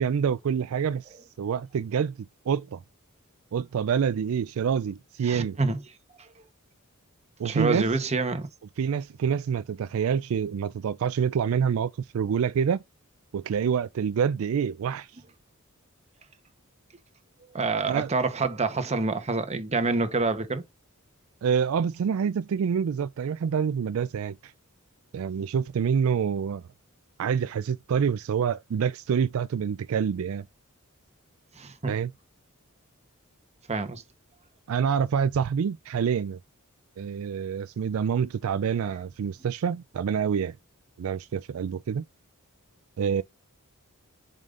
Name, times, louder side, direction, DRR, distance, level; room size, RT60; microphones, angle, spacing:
voice 1, 0.0-2.1 2.5-2.8 3.5-5.6 7.4-7.9 8.8-12.8 13.3-15.1 17.9-18.1 21.4-24.5 25.1-26.6 27.2-30.4 31.9-32.1 34.7-36.4 37.0-40.5 41.0-42.0 43.0-43.2, right 7 dB, 70° right, 0.3 m, -27 dB
voice 2, 5.2-5.8 7.4-8.5 17.5-20.6 31.6-31.9 33.7-34.0, right 3 dB, 30° right, 1.0 m, -27 dB
7.4 x 5.0 x 2.5 m
head